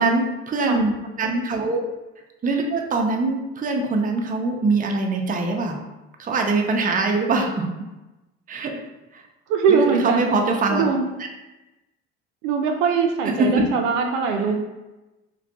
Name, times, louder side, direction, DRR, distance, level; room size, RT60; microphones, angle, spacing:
voice 1, 0.0-1.8 2.4-5.8 6.2-7.7 8.5-8.8 9.1-9.2 9.7-10.8 13.4-13.5, right 3 dB, 25° right, 2 dB, 0.5 m, -23 dB
voice 2, 9.5-10.3 10.7-11.1 12.4-14.6, right 5 dB, 75° right, 3 dB, 0.5 m, -21 dB
2.4 x 2.3 x 3.8 m, 1.0 s
hypercardioid pair, 65°, 32 cm